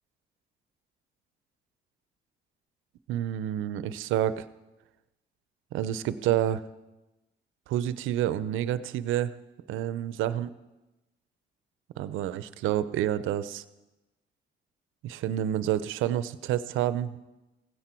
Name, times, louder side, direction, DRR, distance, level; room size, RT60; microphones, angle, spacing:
voice 1, 3.1-4.4 5.7-6.6 7.7-9.3 9.7-10.5 12.0-13.6 15.0-17.2, right 11 dB, 90° right, 15 dB, 0.6 m, -28 dB
16.0 x 9.9 x 4.4 m, 1.0 s
cardioid pair, 90°, 20 cm